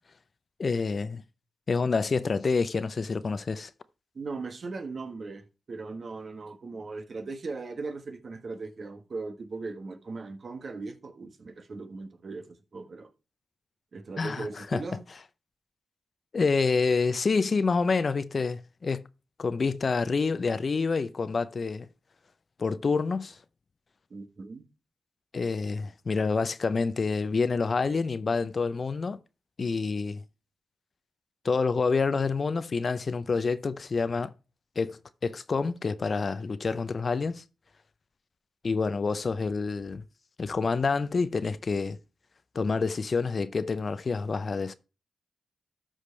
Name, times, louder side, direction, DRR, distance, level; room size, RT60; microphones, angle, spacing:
voice 1, 0.6-1.2 1.7-3.7 14.2-14.8 16.3-19.0 19.4-21.9 22.6-23.4 25.3-29.2 29.6-30.2 31.4-34.3 34.8-37.4 38.6-40.0 40.4-42.0 42.5-44.7, left 4 dB, 50° left, 0.6 m, -27 dB
voice 2, 4.1-13.1 13.9-15.0 24.1-24.6, right 3 dB, 55° right, 1.2 m, -38 dB
13.0 x 5.1 x 3.2 m
cardioid pair, 60°, 0 cm